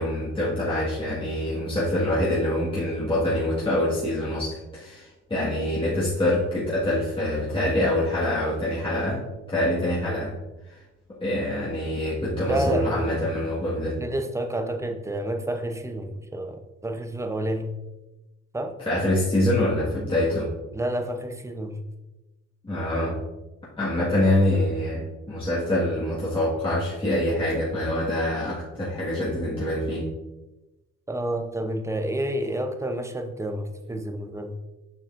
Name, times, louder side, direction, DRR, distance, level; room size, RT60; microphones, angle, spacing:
voice 1, 0.0-10.3 10.7-10.8 11.2-14.0 18.8-20.5 22.6-23.2 23.8-30.1, left 1 dB, 15° left, -8 dB, 1.6 m, -25 dB
voice 2, 12.5-13.1 14.0-17.7 18.5-18.7 20.7-21.8 31.1-34.5, right 1 dB, 10° right, 6 dB, 0.6 m, -29 dB
7.2 x 5.3 x 2.5 m, 1.0 s
cardioid pair, 90°, 30 cm